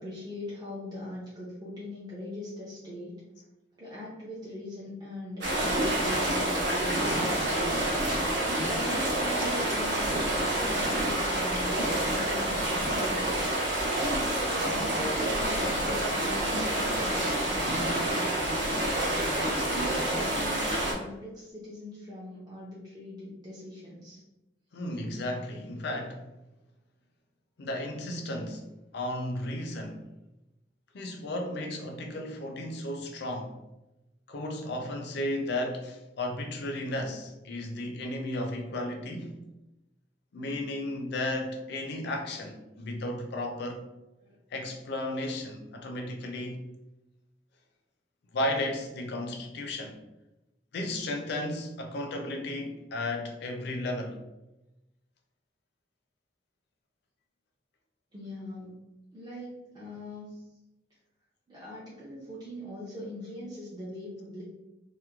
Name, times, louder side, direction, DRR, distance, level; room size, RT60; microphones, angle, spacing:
voice 1, 0.0-3.2 3.8-7.8 8.6-13.6 14.2-18.5 18.8-24.2 44.2-44.3 58.1-58.8 59.1-60.4 61.5-64.6, left 1 dB, 25° right, 0.5 m, -41 dB
sound 1, 5.4-20.9, right 1 dB, 65° right, 0.8 m, -28 dB
voice 2, 24.7-26.3 27.6-28.6 28.9-30.1 30.9-33.6 34.3-39.4 40.3-43.8 44.5-46.6 48.3-50.0 50.7-54.2, left 1 dB, 65° left, 0.4 m, -34 dB
2.9 x 2.1 x 2.3 m
head